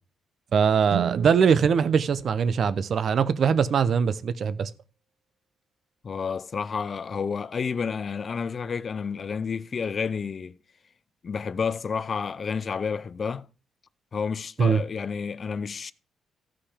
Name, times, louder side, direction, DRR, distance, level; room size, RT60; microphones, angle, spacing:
voice 1, 0.5-4.7 14.6-14.8, right 6 dB, 45° right, 0.6 m, -22 dB
Guitar, 0.9-3.5, right 10 dB, 80° right, 0.8 m, -36 dB
voice 2, 6.0-10.6 11.2-13.5 14.1-15.9, left 6 dB, 35° left, 0.5 m, -30 dB
15.0 x 5.9 x 4.9 m
cardioid pair, 155°, 0 cm